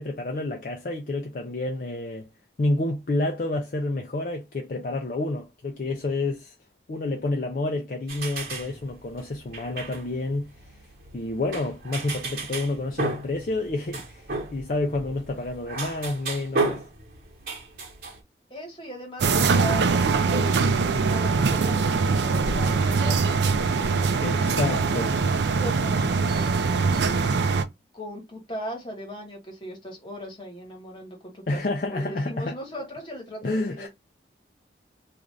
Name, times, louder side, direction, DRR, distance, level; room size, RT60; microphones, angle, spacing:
voice 1, 0.0-2.3 2.6-6.5 6.9-10.5 11.1-16.8 24.2-25.1 31.5-32.5 33.4-33.9, left 2 dB, 45° left, 0.4 m, -29 dB
sound 1, 8.1-18.2, right 3 dB, 50° right, 1.2 m, -34 dB
voice 2, 18.5-24.0 24.5-27.0 27.9-33.9, equal, 25° left, 1.2 m, -38 dB
sound 2, 19.2-27.6, right 4 dB, 75° right, 0.4 m, -22 dB
2.5 x 2.4 x 3.1 m
head